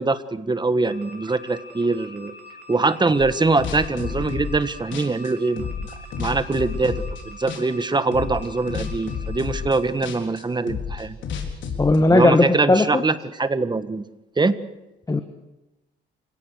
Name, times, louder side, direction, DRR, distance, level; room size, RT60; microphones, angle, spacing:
voice 1, 0.0-2.3 2.7-5.7 6.2-11.2 12.1-14.1 14.4-14.7, right 3 dB, 20° right, 12 dB, 1.5 m, -23 dB
sound 1, 0.8-10.1, left 3 dB, 55° right, 5.7 m, -44 dB
sound 2, 3.2-4.7 4.9-7.2 7.5-7.9 8.1-12.0, left 6 dB, 75° left, 4.1 m, -31 dB
voice 2, 11.8-13.0 15.1-15.2, left 2 dB, 20° left, 8 dB, 1.6 m, -17 dB
29.5 x 17.5 x 6.5 m, 0.97 s
cardioid pair, 90°, 20 cm